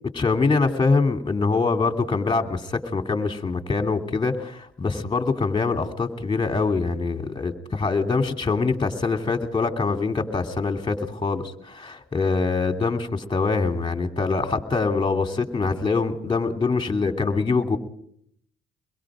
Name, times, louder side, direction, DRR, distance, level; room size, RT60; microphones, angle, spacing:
voice 1, 0.1-17.8, left 4 dB, 25° left, 6 dB, 2.9 m, -24 dB
23.5 x 22.0 x 5.1 m, 0.67 s
cardioid pair, 90°, 20 cm